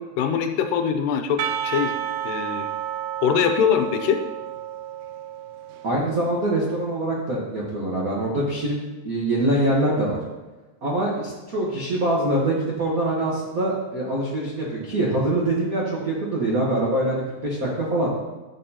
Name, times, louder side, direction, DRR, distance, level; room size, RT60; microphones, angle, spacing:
voice 1, 0.2-1.9 2.2-2.7 3.2-4.2, left 7 dB, 90° left, 6 dB, 2.3 m, -22 dB
Percussion, 1.4-6.2, right 10 dB, 90° right, 1.5 m, -31 dB
voice 2, 5.8-8.8 9.0-10.2 10.8-18.1, right 1 dB, 75° right, -4 dB, 0.8 m, -24 dB
11.0 x 6.7 x 2.9 m, 1.2 s
omnidirectional pair, 3.7 m